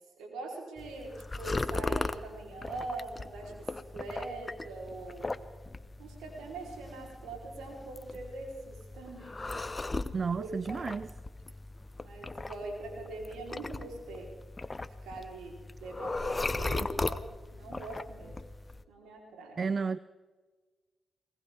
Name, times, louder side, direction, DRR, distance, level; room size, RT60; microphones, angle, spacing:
voice 1, 0.2-5.3 6.0-9.6 10.4-10.9 12.0-14.3 15.0-17.2 17.5-18.4 18.9-19.6, right 2 dB, 85° right, 3.8 m, -42 dB
sound 1, 0.8-18.8, left 2 dB, 30° left, 0.8 m, -38 dB
voice 2, 10.1-11.1 16.9-17.0 19.6-20.0, right 5 dB, 55° right, 0.4 m, -32 dB
21.0 x 19.5 x 3.5 m
supercardioid pair, 40°, 0 cm